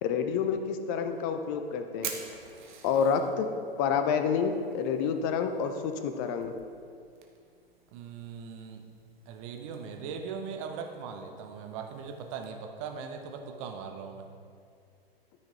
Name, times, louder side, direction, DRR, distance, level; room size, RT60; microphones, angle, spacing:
voice 1, 0.0-2.1 2.8-3.5 3.8-6.5, left 6 dB, 20° left, 8 dB, 0.4 m, -28 dB
Fire, 1.0-12.5, right 7 dB, 50° right, 1.1 m, -49 dB
voice 2, 7.9-8.9 9.3-14.3, right 6 dB, 30° right, 4 dB, 0.8 m, -40 dB
13.0 x 5.8 x 2.8 m, 2.3 s
figure-of-eight pair, 110°, 30 cm